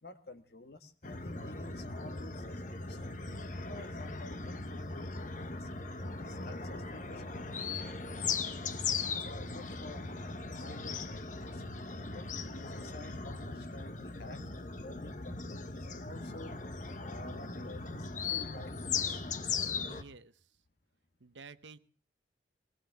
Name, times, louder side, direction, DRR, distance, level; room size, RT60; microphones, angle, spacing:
voice 1, 0.0-3.2 3.7-5.7 6.2-8.0 8.7-10.1 10.5-11.6 12.1-16.5 17.0-19.2, left 2 dB, 60° left, 8 dB, 1.5 m, -51 dB
sound 1, 1.0-20.0, left 4 dB, 45° left, 1.0 m, -38 dB
voice 2, 19.9-20.5 21.2-21.8, right 4 dB, 85° right, 13 dB, 0.9 m, -51 dB
21.5 x 19.0 x 3.5 m, 0.38 s
head